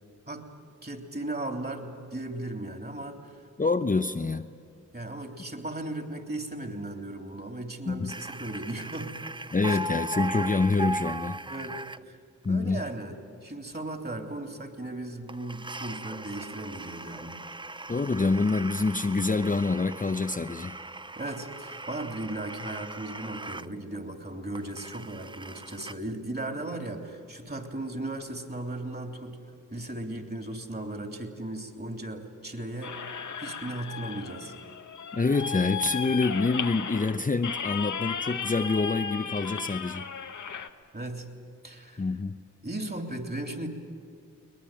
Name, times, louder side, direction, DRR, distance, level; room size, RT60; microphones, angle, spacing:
voice 1, 0.8-3.3 4.9-9.2 9.7-9.8 11.5-11.8 12.1-12.2 12.5-13.2 13.4-17.4 21.2-29.4 29.7-33.0 33.4-34.5 40.5-40.6 40.9-41.3 41.6-42.0 42.6-43.7, right 2 dB, 30° right, 4 dB, 3.3 m, -36 dB
voice 2, 3.6-4.5 7.9-8.1 9.5-11.4 12.4-12.8 17.9-20.8 35.1-40.0 42.0-42.4, left 3 dB, 25° left, 7 dB, 0.8 m, -26 dB
sound 1, 8.1-12.0 15.3-23.7 23.9-24.0 24.5-26.0, right 2 dB, 15° right, 0.6 m, -38 dB
sound 2, 32.8-40.7, left 7 dB, 70° left, 1.1 m, -35 dB
22.5 x 19.5 x 9.1 m, 2.4 s
cardioid pair, 40°, 31 cm